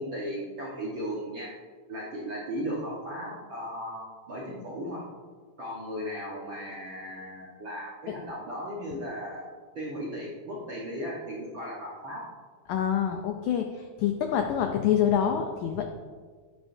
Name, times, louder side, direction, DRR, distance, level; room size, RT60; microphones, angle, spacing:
voice 1, 0.0-1.5 1.9-5.1 5.6-9.5 9.7-12.3, equal, 55° right, -6 dB, 1.3 m, -36 dB
voice 2, 12.7-15.9, left 9 dB, 85° left, 4 dB, 1.7 m, -26 dB
11.0 x 9.6 x 2.7 m, 1.5 s
omnidirectional pair, 4.1 m